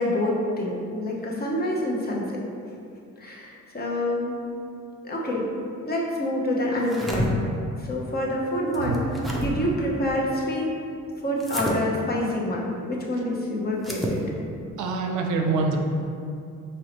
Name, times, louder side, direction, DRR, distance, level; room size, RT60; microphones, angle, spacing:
voice 1, 0.0-2.4 3.2-4.4 5.0-5.5 5.8-7.3 7.8-10.7 11.2-14.2, left 1 dB, 30° left, -3 dB, 0.8 m, -27 dB
sound 1, 6.7-7.3 8.7-9.5 11.4-11.8 13.8-14.2, equal, ahead, 0.6 m, -29 dB
voice 2, 14.8-15.8, right 4 dB, 75° right, 2 dB, 0.6 m, -25 dB
4.5 x 3.1 x 3.0 m, 2.5 s
cardioid pair, 90°, 30 cm